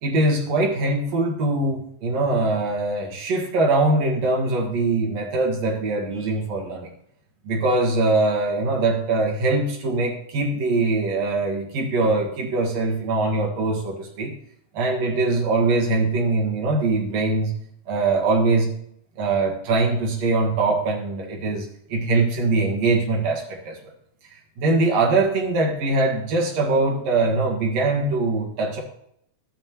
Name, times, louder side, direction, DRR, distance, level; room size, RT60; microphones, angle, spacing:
voice 1, 0.0-6.9 7.5-14.3 14.7-17.5 17.9-18.7 19.2-23.8 24.6-28.8, right 3 dB, 55° right, -1 dB, 2.5 m, -22 dB
12.5 x 8.0 x 3.0 m, 0.70 s
omnidirectional pair, 4.2 m